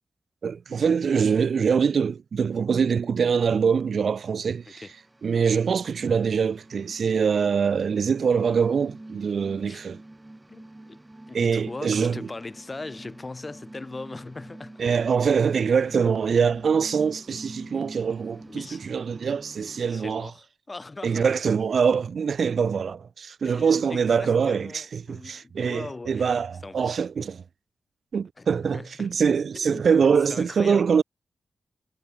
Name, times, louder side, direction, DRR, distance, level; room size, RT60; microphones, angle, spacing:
voice 1, 0.4-4.8 5.2-10.0 11.3-12.2 14.8-20.3 21.0-27.4 28.1-31.0, right 6 dB, 70° right, 5.7 m, -24 dB
sound 1, 4.3-20.0, right 1 dB, 20° right, 6.4 m, -46 dB
voice 2, 10.5-11.0 11.3-14.8 15.2-15.4 18.5-18.8 19.9-21.3 23.4-26.9 28.4-29.2 29.7-29.8 30.3-30.9, left 3 dB, 30° left, 7.1 m, -40 dB
cardioid pair, 75°, 0 cm